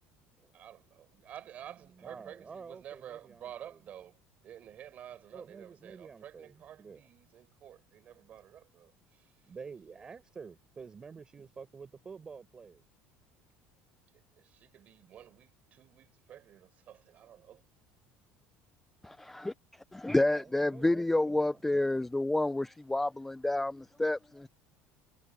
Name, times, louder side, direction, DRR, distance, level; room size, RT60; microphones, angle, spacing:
voice 1, 0.5-4.2 4.4-9.3 14.4-17.6, right 10 dB, 35° right, 5.4 m, -50 dB
voice 2, 1.9-3.8 5.3-7.0 9.4-12.8 20.2-22.1, right 5 dB, 20° right, 5.2 m, -49 dB
voice 3, 19.9-24.2, left 2 dB, 5° left, 0.4 m, -29 dB
cardioid pair, 170°, 5 cm